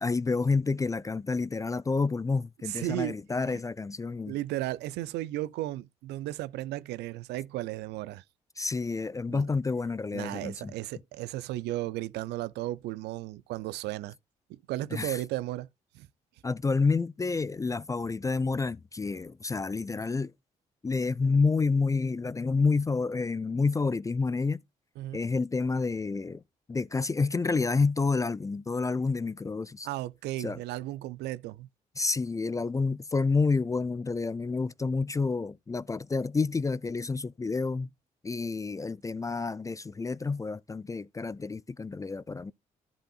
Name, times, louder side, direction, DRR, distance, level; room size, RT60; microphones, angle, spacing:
voice 1, 0.0-4.4 8.6-10.7 14.9-15.2 16.4-20.3 20.8-24.6 25.1-26.4 26.7-29.9 30.4-30.6 32.0-37.9 38.2-42.5, left 4 dB, 20° left, 0.3 m, -29 dB
voice 2, 2.7-3.2 3.5-3.6 4.3-8.2 9.3-9.5 10.1-14.2 14.5-15.7 15.9-16.1 25.0-25.2 29.8-31.7, right 15 dB, 70° right, 0.4 m, -35 dB
13.5 x 5.1 x 2.4 m
hypercardioid pair, 45°, 18 cm